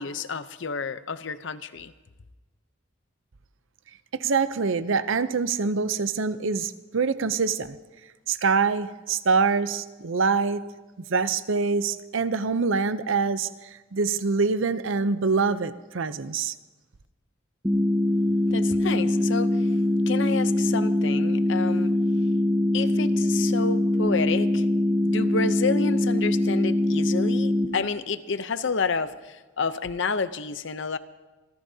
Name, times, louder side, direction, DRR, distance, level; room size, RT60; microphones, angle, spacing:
voice 1, 0.0-1.9 18.5-19.7 20.1-21.9 22.7-24.6 25.0-31.0, left 4 dB, 60° left, 12 dB, 0.7 m, -30 dB
voice 2, 4.1-7.8 8.3-10.6 11.0-16.5, right 4 dB, 65° right, 13 dB, 0.6 m, -25 dB
sound 1, 17.6-27.7, left 1 dB, 10° right, 1.2 m, -23 dB
27.0 x 15.0 x 2.8 m, 1.2 s
head